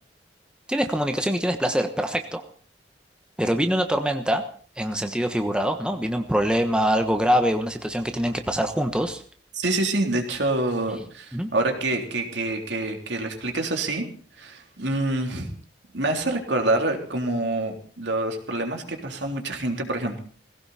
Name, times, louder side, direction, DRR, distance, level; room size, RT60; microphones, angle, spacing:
voice 1, 0.7-2.4 3.4-4.4 4.8-9.2 11.3-11.5, equal, 5° right, 6 dB, 1.2 m, -24 dB
voice 2, 9.5-14.1 14.4-15.5 15.9-20.2, right 2 dB, 70° right, 3 dB, 3.5 m, -26 dB
19.0 x 17.0 x 4.3 m, 0.44 s
head